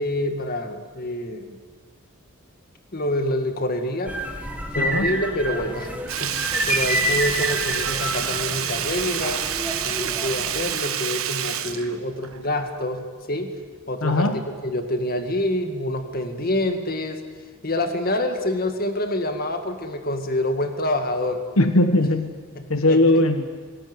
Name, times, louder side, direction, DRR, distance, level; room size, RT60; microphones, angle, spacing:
voice 1, 0.0-1.6 2.9-4.2 4.7-5.9 6.2-9.5 9.8-13.5 13.9-17.2 17.6-21.4 22.6-23.0, left 1 dB, 45° left, 6 dB, 2.0 m, -27 dB
sound 1, 4.1-10.8, equal, 5° right, 1.9 m, -28 dB
voice 2, 4.7-5.1 14.0-14.4 21.6-22.3 22.7-23.5, left 2 dB, 80° left, 7 dB, 1.4 m, -19 dB
Sink (filling or washing), 6.1-12.6 12.9-13.0, right 10 dB, 80° right, 1.4 m, -28 dB
19.0 x 19.0 x 9.6 m, 1.5 s
head